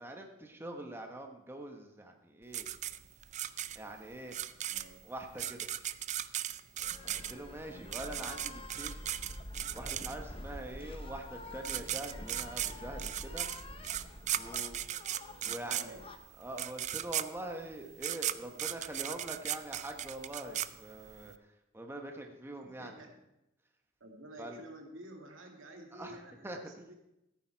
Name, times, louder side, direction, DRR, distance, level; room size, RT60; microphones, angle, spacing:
voice 1, 0.0-2.7 3.7-4.4 5.0-5.6 7.0-9.0 9.7-13.5 14.3-14.8 15.5-16.0 16.4-21.3 21.7-22.9 24.4-24.6 25.9-26.2 26.4-26.6, right 1 dB, 10° right, 3 dB, 1.1 m, -44 dB
sound 1, 2.5-10.5 11.3-11.4 11.6-21.3, right 11 dB, 35° right, 0.4 m, -37 dB
voice 2, 4.7-5.1 7.7-8.0 15.4-16.1 22.6-23.2 24.0-26.9, right 1 dB, 90° right, 2 dB, 2.1 m, -51 dB
sound 2, 6.8-16.2, left 1 dB, 30° left, 0.8 m, -47 dB
14.5 x 9.1 x 4.5 m, 0.89 s
head